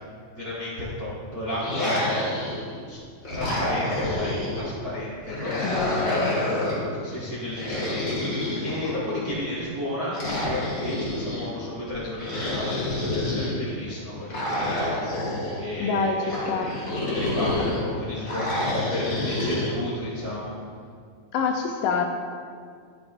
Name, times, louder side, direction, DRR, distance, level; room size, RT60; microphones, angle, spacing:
voice 1, 0.3-2.3 2.9-3.0 3.3-6.6 7.0-8.3 8.6-15.3 15.5-20.5, left 1 dB, 55° right, -9 dB, 1.0 m, -32 dB
sound 1, 1.5-2.8 3.2-4.7 5.3-6.9 7.5-9.2 10.1-11.5 12.2-13.6 14.3-15.6 16.3-17.8 18.2-19.7, left 1 dB, 50° left, 1.0 m, -28 dB
voice 2, 5.6-6.2 15.8-16.2 16.5-16.8 21.3-22.0, left 5 dB, 80° left, 4 dB, 2.0 m, -26 dB
10.5 x 6.5 x 2.4 m, 2.1 s
omnidirectional pair, 4.0 m